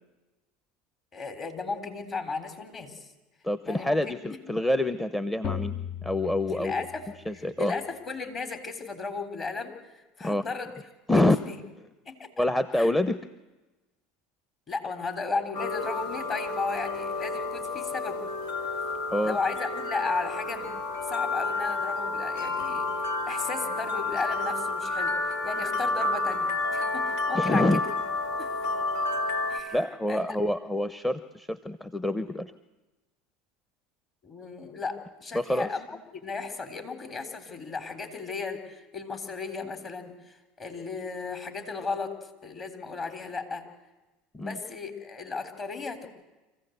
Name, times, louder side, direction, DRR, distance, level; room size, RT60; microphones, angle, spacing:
voice 1, 1.1-3.1 3.6-4.2 6.5-10.7 11.1-11.6 12.1-12.4 12.8-12.9 14.7-18.2 19.2-27.8 28.4-28.6 29.5-29.8 30.1-30.3 34.2-35.9 36.1-42.1 42.4-43.6 44.4-46.1, left 4 dB, 35° left, 7 dB, 3.7 m, -35 dB
voice 2, 3.4-5.7 6.0-6.8 7.3-7.7 10.2-10.4 11.1-11.4 12.4-13.2 19.1-19.4 27.3-27.8 29.7-32.5 35.3-35.7 44.3-44.6, left 1 dB, 10° left, 11 dB, 0.9 m, -26 dB
sound 1, 5.4-7.4, left 8 dB, 55° left, 0.8 m, -36 dB
sound 2, 15.5-29.6, left 3 dB, 80° left, 2.9 m, -30 dB
25.5 x 15.5 x 8.1 m, 1.1 s
hypercardioid pair, 85°, 0 cm